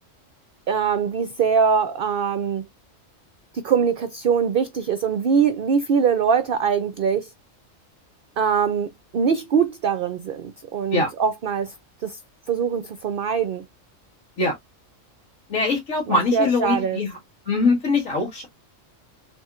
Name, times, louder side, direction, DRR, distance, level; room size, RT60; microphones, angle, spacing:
voice 1, 0.7-2.7 3.5-7.3 8.4-11.7 12.0-12.2 12.5-13.7 16.1-17.0, right 6 dB, 60° right, 0.6 m, -22 dB
voice 2, 15.5-17.1 17.5-18.5, left 3 dB, 80° left, 2.0 m, -22 dB
4.1 x 3.6 x 2.4 m
omnidirectional pair, 1.3 m